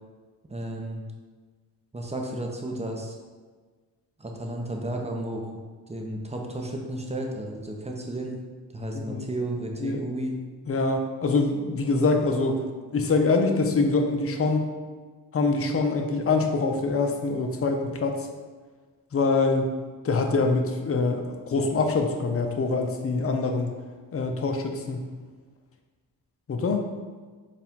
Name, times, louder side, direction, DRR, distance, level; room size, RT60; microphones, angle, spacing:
voice 1, 0.5-1.0 1.9-3.2 4.2-5.6 5.9-8.3 8.7-10.4, right 1 dB, 15° right, 1 dB, 0.7 m, -33 dB
voice 2, 8.9-9.3 9.8-10.0 10.7-12.6 12.9-14.6 15.3-18.3 19.1-19.7 20.0-23.7 24.1-25.1 26.5-26.9, left 3 dB, 30° left, 4 dB, 0.6 m, -24 dB
4.3 x 2.5 x 3.6 m, 1.4 s
supercardioid pair, 55°, 44 cm